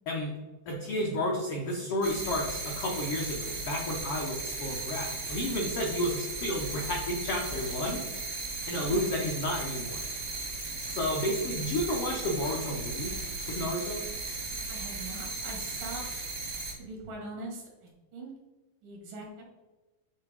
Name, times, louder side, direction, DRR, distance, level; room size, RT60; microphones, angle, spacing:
voice 1, 0.7-8.0 8.7-10.0 10.9-13.1 13.5-14.0, left 1 dB, 80° left, -1 dB, 1.2 m, -31 dB
sound 1, 2.0-16.7, right 3 dB, 60° right, 0.8 m, -36 dB
voice 2, 8.7-9.1 14.7-16.3 16.8-18.3 18.8-19.5, right 2 dB, 90° right, -1 dB, 3.3 m, -42 dB
8.8 x 4.1 x 3.4 m, 1.2 s
omnidirectional pair, 3.7 m